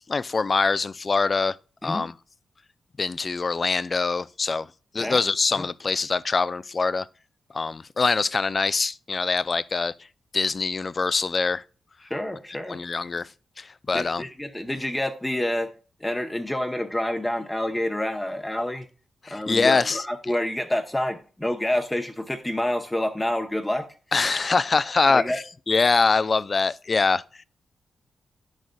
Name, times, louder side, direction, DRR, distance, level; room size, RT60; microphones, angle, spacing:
voice 1, 0.0-1.6 1.8-2.1 3.0-4.7 4.9-7.1 7.5-9.9 10.3-11.6 12.7-13.3 13.6-14.2 19.2-20.0 24.1-27.2, left 4 dB, 40° left, 0.3 m, -24 dB
voice 2, 12.0-12.8 13.9-15.7 16.0-18.9 19.3-23.9 25.1-25.4, left 1 dB, 10° left, 0.7 m, -28 dB
9.0 x 6.4 x 2.3 m
cardioid pair, 85°, 0 cm